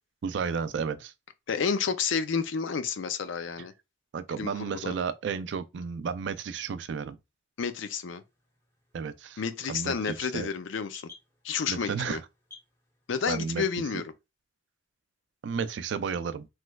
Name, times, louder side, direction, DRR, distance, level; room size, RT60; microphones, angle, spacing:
voice 1, 0.2-1.1 4.1-7.2 8.9-9.4 9.7-10.5 11.7-12.2 13.3-13.6 15.4-16.5, right 6 dB, 70° right, 0.3 m, -32 dB
voice 2, 1.5-3.7 4.4-4.9 7.6-8.2 9.4-11.1 11.4-12.2 13.1-14.1, left 6 dB, 80° left, 0.5 m, -30 dB
sound 1, 8.0-13.5, left 4 dB, 15° left, 0.8 m, -56 dB
3.2 x 3.0 x 2.3 m
head